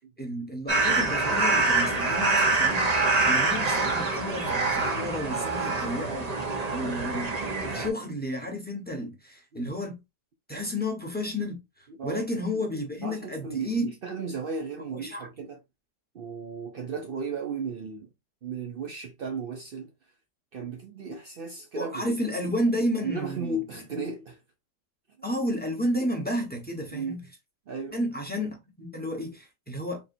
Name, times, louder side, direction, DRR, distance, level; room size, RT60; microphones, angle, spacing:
voice 1, 0.2-6.3 6.7-7.4 7.6-10.0 10.5-11.6 12.0-13.9 14.9-15.3 21.7-23.6 25.2-27.2 27.9-30.0, equal, 5° left, 0.9 m, -31 dB
sound 1, 0.7-7.9, right 3 dB, 30° right, 0.8 m, -25 dB
voice 2, 11.9-12.3 13.0-15.6 16.1-18.1 18.4-19.9 20.5-22.2 23.0-24.4 25.2-25.3 26.9-27.2 27.7-28.0, right 4 dB, 90° right, 0.4 m, -35 dB
4.2 x 3.5 x 2.6 m
omnidirectional pair, 1.8 m